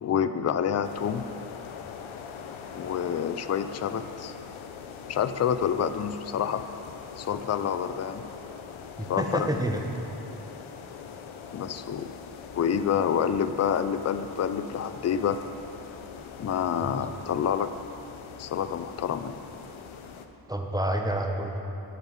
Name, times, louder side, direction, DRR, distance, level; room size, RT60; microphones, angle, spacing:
voice 1, 0.0-1.3 2.7-4.3 5.1-6.6 7.2-8.2 9.1-9.5 11.5-12.2 12.5-15.4 16.4-17.7 18.4-19.4, left 8 dB, 35° left, 11 dB, 0.4 m, -28 dB
sound 1, 0.8-20.3, left 6 dB, 90° left, 0.7 m, -43 dB
voice 2, 9.0-9.8 16.8-16.9 20.5-21.6, right 1 dB, 10° right, 2 dB, 0.9 m, -28 dB
9.4 x 5.5 x 7.2 m, 2.9 s
wide cardioid pair, 80°, 46 cm